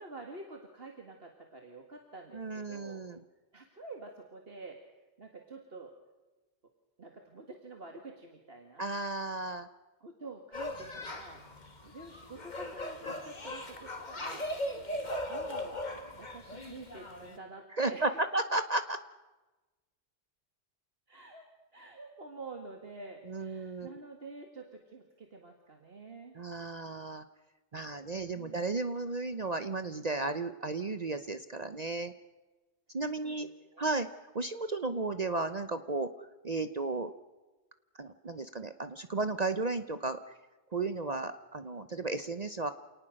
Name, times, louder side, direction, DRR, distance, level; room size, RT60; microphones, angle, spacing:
voice 1, 0.0-3.0 3.5-4.8 5.2-5.9 6.6-6.7 7.0-8.8 10.0-11.4 11.8-14.5 15.3-15.8 16.2-18.4 21.1-21.5 21.7-26.4 28.3-28.7 33.2-34.0, right 3 dB, 55° right, 3 dB, 2.2 m, -48 dB
voice 2, 2.3-3.2 8.8-9.7 17.8-19.0 23.3-24.0 26.4-27.2 27.7-32.1 32.9-33.5 33.8-34.1 34.3-36.1 36.4-37.1 38.0-40.2 40.7-42.7, right 3 dB, 40° right, 10 dB, 0.9 m, -34 dB
sound 1, 10.5-17.4, left 1 dB, 40° left, 2.2 m, -39 dB
28.0 x 19.0 x 6.4 m, 1.2 s
omnidirectional pair, 1.2 m